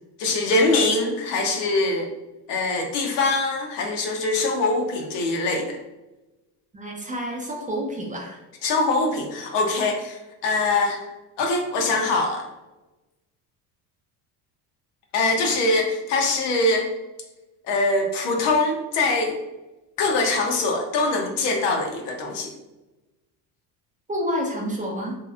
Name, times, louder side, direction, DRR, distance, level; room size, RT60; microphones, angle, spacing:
voice 1, 0.2-2.1 2.5-5.8 8.6-11.0 11.4-12.5 15.1-16.9 17.7-19.4 20.0-22.5, left 2 dB, 65° left, 2 dB, 0.8 m, -23 dB
voice 2, 6.7-8.4 24.1-25.2, equal, 15° right, -1 dB, 0.6 m, -29 dB
3.0 x 2.9 x 2.4 m, 1.1 s
supercardioid pair, 90°, 45 cm